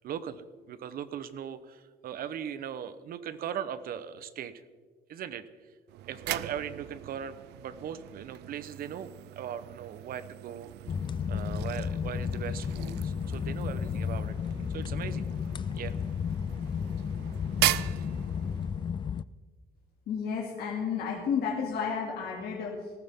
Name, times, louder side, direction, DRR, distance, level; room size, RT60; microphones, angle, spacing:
voice 1, 0.0-4.5 5.1-5.4 6.1-9.1 9.4-10.7 11.3-14.4 14.7-15.3 15.7-15.9, right 9 dB, 60° right, 13 dB, 1.0 m, -39 dB
sound 1, 5.9-18.9, right 16 dB, 80° right, 0.5 m, -38 dB
sound 2, 10.9-19.2, left 7 dB, 30° left, 0.4 m, -33 dB
voice 2, 20.1-22.9, left 6 dB, 70° left, -3 dB, 2.6 m, -32 dB
19.0 x 14.5 x 3.7 m, 1.5 s
cardioid pair, 110°, 17 cm